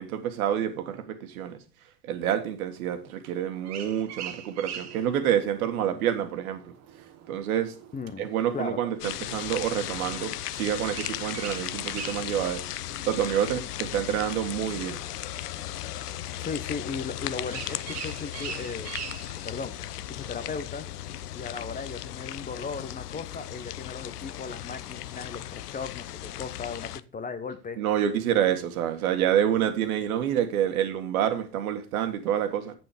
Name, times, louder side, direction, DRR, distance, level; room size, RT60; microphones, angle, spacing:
voice 1, 0.0-1.6 2.0-6.7 7.3-7.8 8.2-12.7 13.1-15.0 27.8-32.7, right 10 dB, 65° right, 1.8 m, -27 dB
sound 1, 3.5-21.3, right 8 dB, 35° right, 1.4 m, -45 dB
voice 2, 7.9-8.3 8.5-8.8 16.4-18.9 19.4-19.7 20.1-20.9 21.3-27.8, left 5 dB, 20° left, 0.9 m, -36 dB
sound 2, 9.0-27.0, left 13 dB, 80° left, 0.7 m, -36 dB
8.1 x 7.5 x 5.0 m
hypercardioid pair, 85°, 46 cm